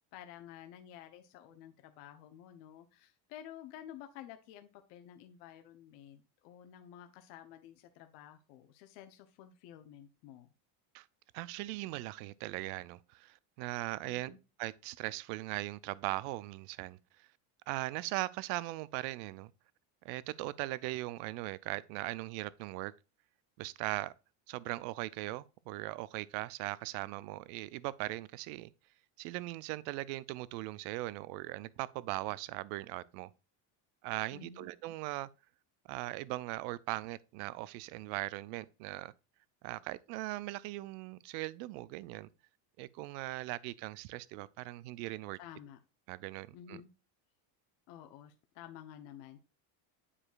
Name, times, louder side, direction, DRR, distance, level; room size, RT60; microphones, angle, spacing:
voice 1, 0.1-10.5 14.0-14.4 34.3-34.7 45.4-45.8 46.5-46.9 47.9-49.4, left 10 dB, 85° left, 1.0 m, -52 dB
voice 2, 11.3-14.3 14.6-17.3 17.7-19.5 20.0-22.9 23.6-24.1 24.5-28.7 29.2-33.3 34.0-35.3 35.9-39.1 39.6-42.3 42.8-45.4 46.1-46.8, right 18 dB, 80° right, 0.6 m, -39 dB
9.8 x 4.9 x 2.4 m
cardioid pair, 175°, 47 cm